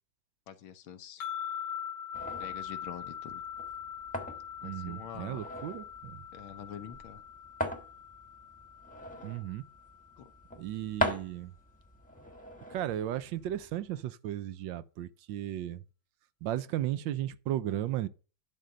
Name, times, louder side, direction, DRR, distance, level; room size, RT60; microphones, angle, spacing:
voice 1, 0.5-1.2 2.4-3.4 4.6-5.4 6.3-7.2 10.2-10.3, left 8 dB, 85° left, 1.7 m, -45 dB
sound 1, 1.2-10.5, left 9 dB, 65° left, 1.5 m, -42 dB
sound 2, 2.1-14.0, equal, 5° left, 1.1 m, -41 dB
voice 2, 4.6-6.2 9.2-9.6 10.6-11.5 12.7-15.8 16.4-18.1, right 12 dB, 75° right, 1.3 m, -35 dB
11.0 x 3.8 x 6.6 m
omnidirectional pair, 2.2 m